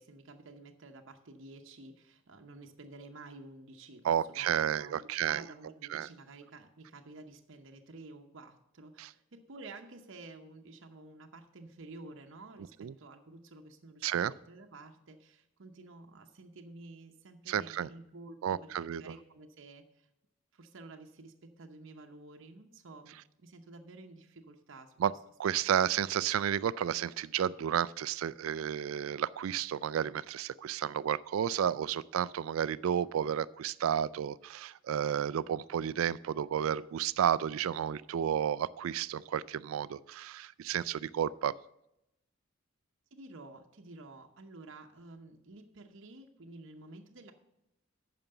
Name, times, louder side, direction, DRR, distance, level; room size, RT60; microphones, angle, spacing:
voice 1, 0.0-20.1 20.5-25.2 43.1-47.3, right 2 dB, 65° right, 4 dB, 0.8 m, -51 dB
voice 2, 4.0-5.4 5.9-6.1 9.0-9.1 12.8-12.9 14.0-14.3 17.5-17.9 18.4-19.0 25.0-25.1 25.4-41.6, right 9 dB, 85° right, 19 dB, 0.3 m, -32 dB
9.0 x 5.9 x 6.7 m, 0.85 s
head